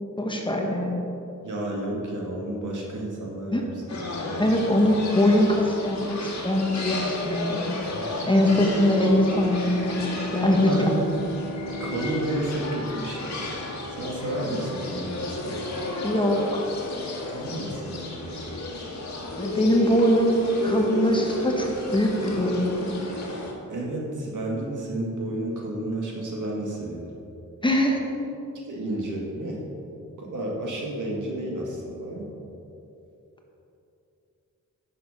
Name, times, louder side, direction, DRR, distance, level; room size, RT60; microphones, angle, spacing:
voice 1, 0.2-1.0 3.5-3.6 4.4-7.8 8.3-11.0 16.0-16.6 19.4-22.8 27.6-28.0, left 1 dB, 15° left, 0 dB, 1.1 m, -22 dB
voice 2, 1.4-4.8 7.8-8.2 10.4-10.9 11.8-13.6 13.9-15.6 17.3-18.6 23.7-27.2 28.7-29.6 30.2-32.3, right 1 dB, 70° right, -2 dB, 2.2 m, -32 dB
sound 1, 3.9-23.5, left 2 dB, 60° left, 1.8 m, -33 dB
Bowed string instrument, 8.2-13.8, right 1 dB, 90° left, 1.0 m, -37 dB
11.0 x 6.5 x 5.4 m, 2.9 s
wide cardioid pair, 135°, 31 cm